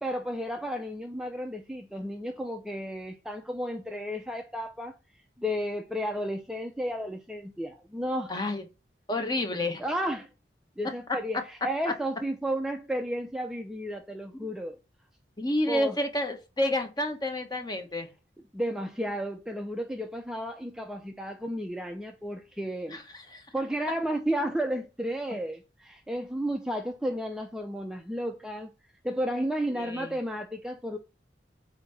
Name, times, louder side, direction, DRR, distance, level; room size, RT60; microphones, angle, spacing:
voice 1, 0.0-4.9 5.4-8.3 9.8-10.3 10.8-14.8 15.7-16.0 18.5-23.0 23.5-28.7 29.0-31.0, equal, 5° right, 0.5 m, -32 dB
voice 2, 8.3-8.6 9.1-9.8 15.4-18.1 22.9-23.4 29.7-30.1, left 1 dB, 25° left, 1.2 m, -30 dB
8.3 x 2.8 x 5.6 m
head